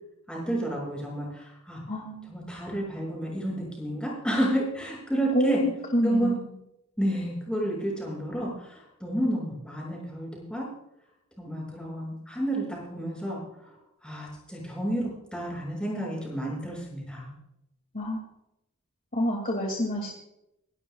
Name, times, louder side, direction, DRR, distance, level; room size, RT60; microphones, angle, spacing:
voice 1, 0.3-1.8 2.3-5.6 6.0-6.4 7.0-10.7 11.4-13.4 13.7-13.8 14.0-17.3, right 1 dB, 5° left, -3 dB, 6.1 m, -30 dB
voice 2, 1.9-2.5 5.3-6.4 17.9-18.3 19.1-20.1, equal, 40° left, 0 dB, 2.2 m, -27 dB
26.0 x 12.5 x 2.3 m, 0.84 s
head